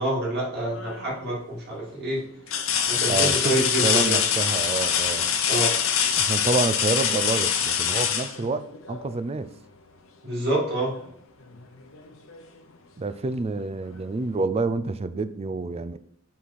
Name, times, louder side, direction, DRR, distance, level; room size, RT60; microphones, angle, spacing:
voice 1, 0.0-2.2 2.9-4.2 5.5-5.7 10.2-10.9, right 1 dB, 55° right, -5 dB, 2.5 m, -27 dB
sound 1, 0.7-1.2 1.8-1.9 2.5-9.2 10.9-11.1 11.5-12.6 13.9-14.0, left 8 dB, 90° left, 0.8 m, -24 dB
voice 2, 3.1-5.3 6.2-8.6 8.9-9.5 13.0-16.0, right 3 dB, 30° right, 13 dB, 0.4 m, -28 dB
5.8 x 4.7 x 4.2 m, 0.68 s
head